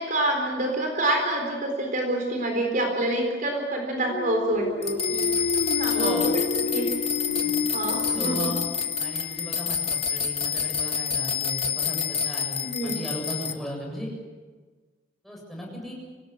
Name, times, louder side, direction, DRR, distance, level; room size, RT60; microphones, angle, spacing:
voice 1, 0.0-5.3 5.8-6.4 6.7-6.9 7.7-8.4 12.6-13.0, right 1 dB, 45° right, 2 dB, 4.2 m, -27 dB
sound 1, 4.0-9.6, left 5 dB, 55° left, 1.0 m, -30 dB
sound 2, 4.8-13.5, left 7 dB, 30° left, 1.5 m, -28 dB
voice 2, 5.9-6.2 7.4-7.5 8.0-8.7 9.0-14.1 15.2-16.0, equal, ahead, -2 dB, 7.6 m, -35 dB
25.5 x 18.5 x 8.3 m, 1.4 s
head